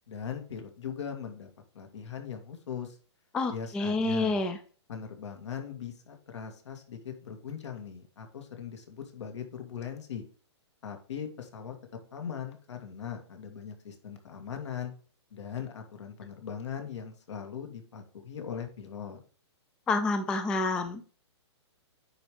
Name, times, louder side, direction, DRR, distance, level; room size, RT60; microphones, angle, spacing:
voice 1, 0.1-1.5 1.7-3.0 3.5-4.4 4.9-10.2 10.8-11.7 12.1-14.9 15.3-19.2, left 7 dB, 75° left, 5 dB, 2.4 m, -40 dB
voice 2, 3.3-4.6 19.9-21.1, left 2 dB, 5° left, 8 dB, 0.3 m, -28 dB
9.2 x 5.2 x 3.2 m, 0.40 s
hypercardioid pair, 165°, 15 cm